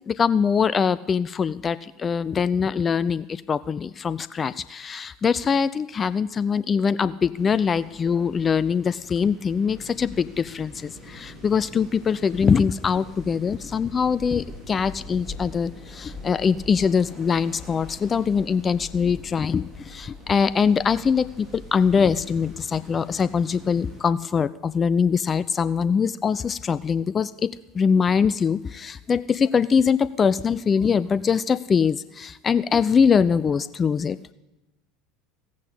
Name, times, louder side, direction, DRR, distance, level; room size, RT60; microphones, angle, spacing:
voice 1, 0.1-34.3, left 6 dB, 30° left, 16 dB, 0.4 m, -23 dB
sound 1, 7.3-24.0, left 1 dB, 5° right, 4.9 m, -43 dB
15.0 x 8.5 x 8.4 m, 1.0 s
figure-of-eight pair, 75°, 0 cm